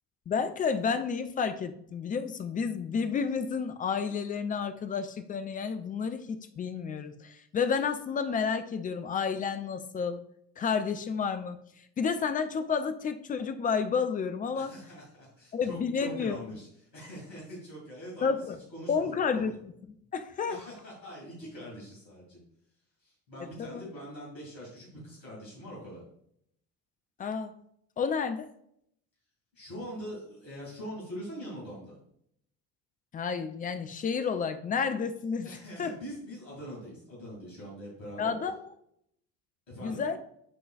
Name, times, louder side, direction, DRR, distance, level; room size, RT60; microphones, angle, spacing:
voice 1, 0.3-10.2 10.6-11.6 12.0-14.7 15.5-16.4 18.2-18.6 18.9-19.6 19.8-20.6 23.6-23.8 27.2-27.5 28.0-28.5 33.1-35.9 38.2-38.6 39.8-40.2, left 6 dB, 20° left, 9 dB, 0.4 m, -31 dB
voice 2, 14.5-16.7 16.9-18.3 18.7-19.5 20.5-22.4 23.0-26.0 29.5-32.0 35.4-38.3 39.7-40.0, equal, 85° left, -6 dB, 2.6 m, -43 dB
10.5 x 3.8 x 2.4 m, 0.71 s
figure-of-eight pair, 60°, 49 cm